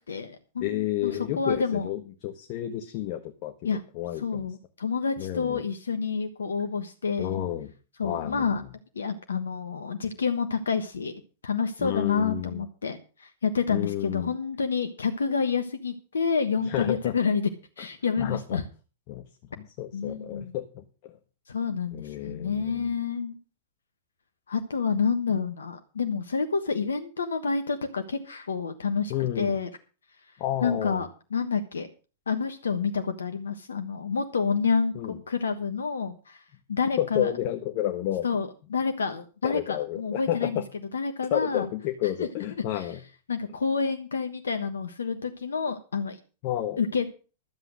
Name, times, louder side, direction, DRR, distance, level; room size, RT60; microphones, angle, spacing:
voice 1, 0.1-1.9 3.6-3.8 4.2-7.4 8.0-8.6 8.9-11.1 11.4-17.5 17.8-18.6 19.9-20.5 21.5-23.4 24.5-29.7 30.6-31.9 32.3-36.4 36.7-37.3 38.2-40.6 40.9-41.7 42.0-42.3 42.7-42.9 43.3-46.2 46.8-47.1, left 5 dB, 85° left, 8 dB, 1.2 m, -28 dB
voice 2, 0.6-3.5 3.9-4.5 5.2-5.6 7.2-7.7 8.0-8.7 11.8-12.6 13.7-14.3 16.6-17.1 17.8-17.9 18.2-18.6 19.1-19.2 19.6-21.2 21.9-22.9 29.1-29.6 30.4-31.0 34.9-35.2 37.0-38.3 39.4-40.6 41.3-43.0 46.4-46.8, left 13 dB, 50° left, 6 dB, 1.5 m, -31 dB
13.0 x 7.9 x 6.3 m, 0.35 s
hypercardioid pair, 105°, 0 cm